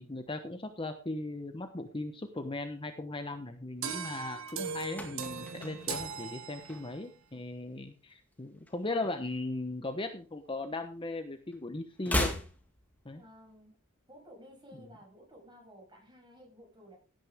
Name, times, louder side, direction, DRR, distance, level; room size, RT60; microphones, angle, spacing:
voice 1, 0.0-12.3 13.0-13.2, left 2 dB, 25° left, 7 dB, 1.0 m, -38 dB
sound 1, 3.8-7.1, right 7 dB, 70° right, 1.4 m, -39 dB
sound 2, 4.3-5.3 5.7-7.0, left 4 dB, 70° left, 2.3 m, -51 dB
sound 3, 4.9-7.2 7.5-7.8 8.1-9.6 9.8-11.2 11.4-13.6 13.8-13.9, left 1 dB, 10° left, 2.3 m, -38 dB
voice 2, 13.1-13.7 14.1-17.0, equal, 20° right, 0 dB, 7.5 m, -54 dB
16.5 x 9.3 x 3.6 m, 0.34 s
head